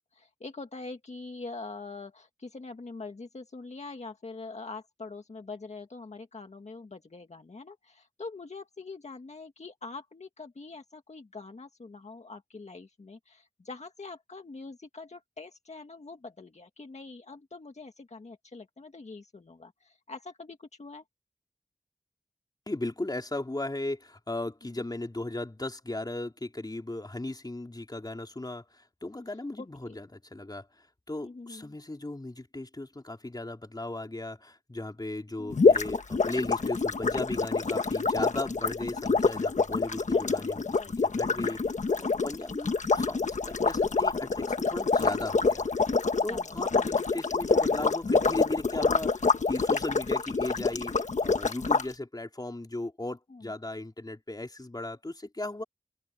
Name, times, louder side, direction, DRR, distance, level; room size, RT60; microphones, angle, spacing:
voice 1, 0.1-21.0 29.6-30.0 31.2-31.7 35.4-35.8 40.1-40.2 40.8-41.4 46.2-46.6 53.3-53.5, left 3 dB, 70° left, 1.8 m, -44 dB
voice 2, 22.7-30.7 31.1-41.6 42.0-45.7 46.2-55.6, left 2 dB, 35° left, 3.8 m, -36 dB
sound 1, 35.5-51.8, left 4 dB, 90° left, 1.3 m, -26 dB
open air
wide cardioid pair, 55°, 12 cm